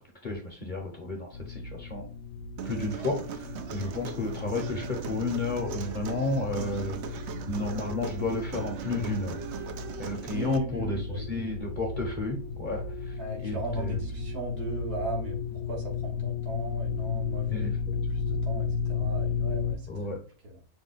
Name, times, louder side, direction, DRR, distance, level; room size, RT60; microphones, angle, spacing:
voice 1, 0.2-2.0 2.6-3.5 3.7-7.0 7.5-9.4 10.0-12.8 13.4-14.0 17.5-17.7 19.9-20.2, left 2 dB, 45° left, 1 dB, 0.7 m, -32 dB
sound 1, 1.3-19.8, left 4 dB, 70° left, 1.0 m, -34 dB
Human voice, 2.6-10.6, right 8 dB, 65° right, 0.7 m, -40 dB
voice 2, 10.3-11.5 13.2-19.9 20.4-20.6, right 1 dB, 85° right, -2 dB, 2.0 m, -37 dB
5.9 x 2.2 x 3.9 m, 0.42 s
omnidirectional pair, 1.6 m